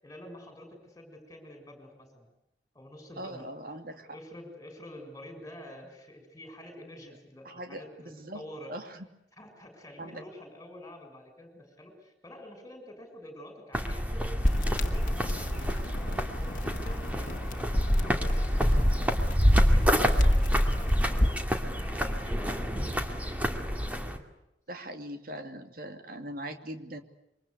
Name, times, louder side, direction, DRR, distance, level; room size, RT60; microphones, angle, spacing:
voice 1, 0.0-2.3 2.7-3.8 4.1-8.7 9.3-24.3, left 1 dB, 20° left, 5 dB, 6.9 m, -48 dB
voice 2, 3.2-4.1 7.4-8.4 8.7-9.0 10.0-10.2 24.7-27.0, right 1 dB, 55° right, 7 dB, 2.6 m, -41 dB
sound 1, 13.7-24.2, equal, 10° right, 2.5 m, -26 dB
sound 2, 14.4-21.5, left 1 dB, 50° left, 1.7 m, -33 dB
27.5 x 24.0 x 8.2 m, 0.88 s
head